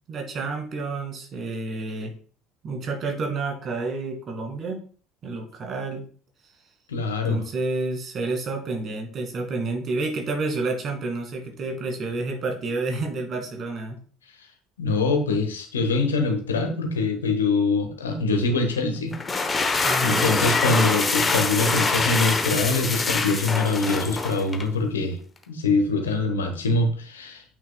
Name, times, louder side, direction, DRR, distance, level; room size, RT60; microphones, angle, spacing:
voice 1, 0.1-2.1 2.6-4.8 5.2-6.0 7.2-14.0 19.8-20.3, right 3 dB, 40° right, 2 dB, 2.2 m, -29 dB
voice 2, 6.9-7.4 14.8-19.1 20.0-25.2 25.5-27.4, left 3 dB, 80° left, 5 dB, 1.2 m, -24 dB
sound 1, 19.1-24.7, left 3 dB, 25° left, 0.9 m, -24 dB
8.3 x 6.1 x 2.3 m, 0.42 s
figure-of-eight pair, 60°, 0 cm